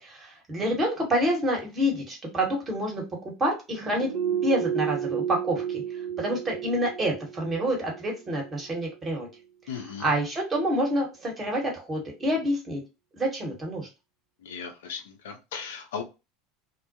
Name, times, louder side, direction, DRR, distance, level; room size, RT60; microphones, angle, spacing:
voice 1, 0.0-3.0 3.4-5.8 6.2-9.3 10.0-12.8 13.1-13.9, equal, 25° right, 1.1 m, -27 dB
sound 1, 3.8-9.0 9.3-9.4, right 9 dB, 50° right, 0.8 m, -32 dB
voice 2, 9.7-10.1 14.4-16.0, left 6 dB, 70° left, 0.4 m, -37 dB
2.1 x 2.1 x 2.7 m
figure-of-eight pair, 75°, 0 cm